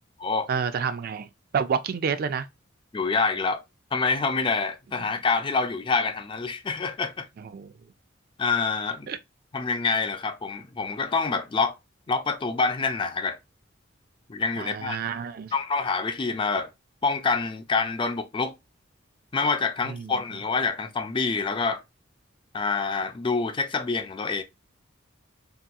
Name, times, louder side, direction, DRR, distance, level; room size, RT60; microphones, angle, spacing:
voice 1, 0.5-1.3 1.5-2.5 7.4-7.7 9.1-9.2 14.6-15.5 19.9-20.1, right 6 dB, 50° right, 0.3 m, -29 dB
voice 2, 2.9-3.6 3.9-7.3 8.4-9.1 9.5-11.7 12.1-13.4 14.3-15.0 15.5-16.7 17.0-18.5 19.3-21.8 22.5-24.4, left 4 dB, 25° left, 0.4 m, -26 dB
3.5 x 2.8 x 2.2 m
head